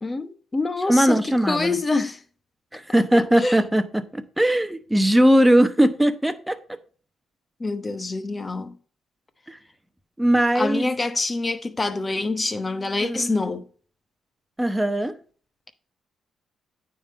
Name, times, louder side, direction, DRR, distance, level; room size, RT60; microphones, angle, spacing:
voice 1, 0.0-2.2 3.4-3.6 7.6-8.8 10.5-13.7, left 3 dB, 25° left, 1.0 m, -26 dB
voice 2, 0.9-1.8 2.7-6.6 9.5-9.6 10.2-10.9 13.0-13.3 14.6-15.2, right 1 dB, 5° right, 0.9 m, -20 dB
9.2 x 3.9 x 5.3 m
cardioid pair, 90°, 0 cm